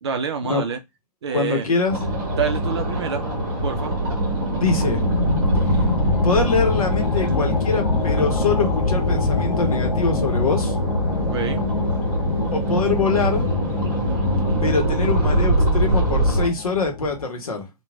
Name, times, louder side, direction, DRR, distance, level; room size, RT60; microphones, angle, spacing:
voice 1, 0.0-0.8 1.2-1.7 2.4-3.3 3.6-4.0 11.3-11.7, right 7 dB, 40° right, 0.5 m, -27 dB
voice 2, 1.3-2.0 4.5-5.0 6.2-10.8 12.5-13.5 14.6-17.7, left 4 dB, 60° left, 0.9 m, -23 dB
sound 1, 1.9-16.5, equal, 25° right, 1.1 m, -22 dB
sound 2, 4.5-17.3, left 5 dB, 80° left, 0.4 m, -28 dB
3.0 x 2.2 x 2.3 m
figure-of-eight pair, 125°, 21 cm